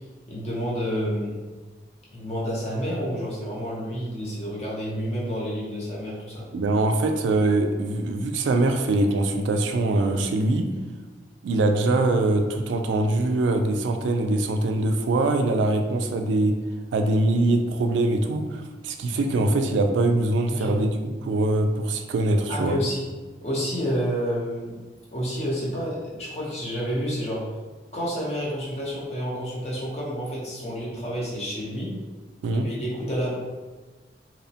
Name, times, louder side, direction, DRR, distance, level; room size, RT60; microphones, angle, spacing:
voice 1, 0.3-1.4 2.1-6.5 20.5-20.8 22.5-23.0 23.4-24.8 25.1-27.5 27.9-31.9 32.5-33.4, equal, 35° left, -6 dB, 0.7 m, -29 dB
voice 2, 6.5-10.7 11.4-16.6 16.9-20.9 21.2-22.8 32.4-32.7, right 2 dB, 90° right, 5 dB, 0.3 m, -23 dB
2.9 x 2.0 x 2.7 m, 1.3 s
head